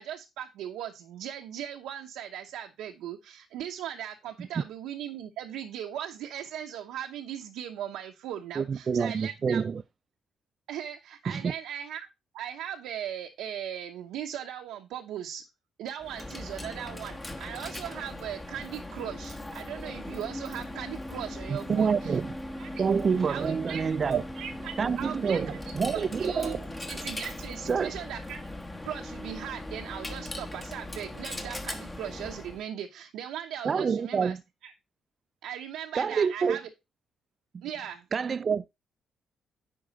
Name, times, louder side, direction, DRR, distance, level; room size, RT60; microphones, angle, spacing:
voice 1, 0.0-9.6 10.7-12.1 12.3-15.4 15.8-22.2 22.6-22.8 23.3-25.6 25.9-26.6 26.9-28.5 28.8-34.4 34.6-34.7 35.4-36.6 37.6-38.0, right 10 dB, 90° right, 0.9 m, -38 dB
voice 2, 8.6-9.8 11.3-11.5 21.5-22.3 22.8-24.2 24.8-26.7 27.6-27.9 33.6-34.4 35.9-36.6 38.1-38.7, right 6 dB, 45° right, 0.5 m, -27 dB
Coin (dropping), 16.0-32.6, left 1 dB, 15° left, 1.3 m, -39 dB
10.0 x 4.7 x 4.0 m
cardioid pair, 90°, 0 cm